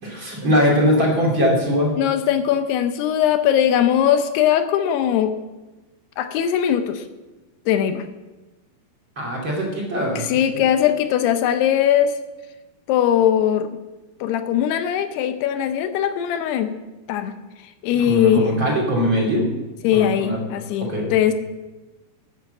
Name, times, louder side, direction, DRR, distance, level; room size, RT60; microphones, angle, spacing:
voice 1, 0.0-2.0 9.2-10.3 10.5-10.6 17.9-19.4 19.9-20.4 20.9-21.1, equal, 35° right, -3 dB, 2.8 m, -21 dB
voice 2, 2.0-5.3 6.2-7.0 7.7-8.1 10.0-12.1 12.9-13.8 14.2-16.8 17.1-17.4 17.8-18.5 19.8-21.3, left 10 dB, 80° left, 9 dB, 2.7 m, -20 dB
12.0 x 8.3 x 7.8 m, 1.1 s
omnidirectional pair, 4.8 m